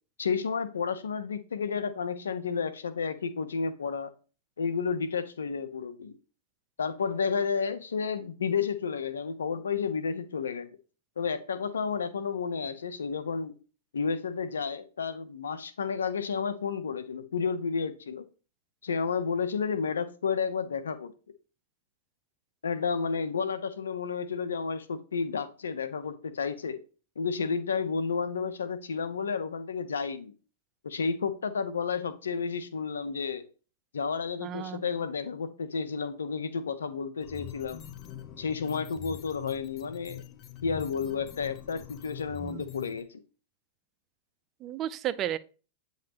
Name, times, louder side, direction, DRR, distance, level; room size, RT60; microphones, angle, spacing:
voice 1, 0.2-4.1 4.6-6.1 6.8-10.7 11.2-13.6 13.9-18.2 18.8-21.1 22.6-26.8 27.2-30.3 30.8-33.5 33.9-37.8 38.4-40.2 40.6-43.1, left 5 dB, 90° left, 0.8 m, -31 dB
voice 2, 34.4-34.8 42.4-42.6 44.6-45.4, right 11 dB, 35° right, 0.5 m, -33 dB
sound 1, 37.2-43.0, left 10 dB, 35° left, 0.9 m, -44 dB
8.5 x 5.8 x 3.0 m
hypercardioid pair, 115°, 0 cm